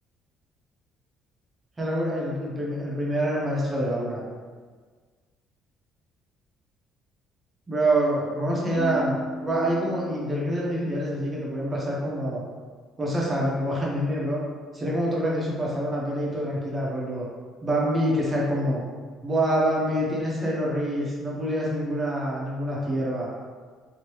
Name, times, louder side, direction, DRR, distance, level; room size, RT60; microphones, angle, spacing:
voice 1, 1.8-4.2 7.7-12.4 13.0-14.4 14.7-17.3 17.6-18.8 19.2-23.3, right 1 dB, 20° right, -4 dB, 0.9 m, -26 dB
Keyboard (musical), 8.7-10.5, equal, 50° left, 0.8 m, -36 dB
3.2 x 2.9 x 3.0 m, 1.5 s
cardioid pair, 130°, 0 cm